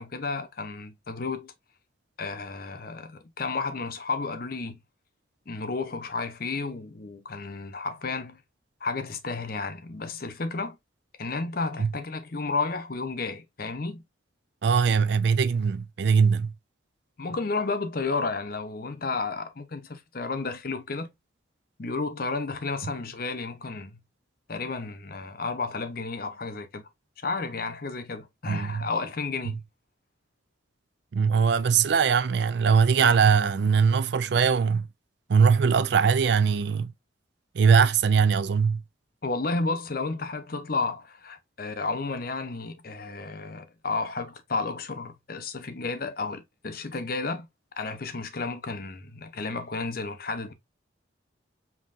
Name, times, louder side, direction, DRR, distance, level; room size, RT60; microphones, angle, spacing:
voice 1, 0.0-1.5 2.2-4.8 5.5-8.4 8.8-10.8 11.2-14.0 17.2-21.1 21.8-24.0 24.5-26.9 27.2-29.6 39.2-47.5 47.8-50.5, left 3 dB, 50° left, 0.7 m, -32 dB
voice 2, 14.6-16.5 28.5-28.9 31.1-34.9 35.3-36.9 37.5-38.8, right 6 dB, 60° right, 0.4 m, -21 dB
5.4 x 2.9 x 2.5 m
head